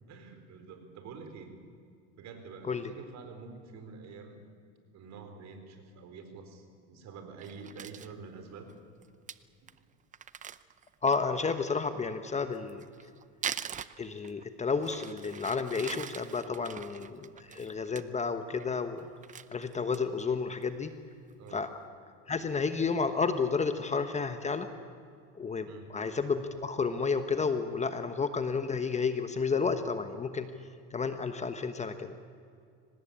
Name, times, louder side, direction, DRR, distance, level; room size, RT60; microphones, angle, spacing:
voice 1, 0.1-1.6 2.2-4.4 4.9-8.7 21.4-21.7 25.6-25.9, right 5 dB, 50° right, 7 dB, 4.3 m, -47 dB
Crumpling crinkling, 7.4-8.1 8.7-8.8 9.0-9.1 9.3-9.4 9.7-9.8 10.1-11.4 12.5-14.5 14.8-18.0 18.4-18.7 19.0-20.2 20.6-20.7 21.1-21.5, right 8 dB, 20° right, 0.6 m, -42 dB
voice 2, 11.0-12.8 14.0-19.1 19.5-20.9 21.5-21.7 22.3-24.7 25.3-30.5 30.9-32.2, left 5 dB, 20° left, 9 dB, 1.2 m, -31 dB
24.5 x 19.0 x 8.8 m, 2.3 s
supercardioid pair, 120°, 36 cm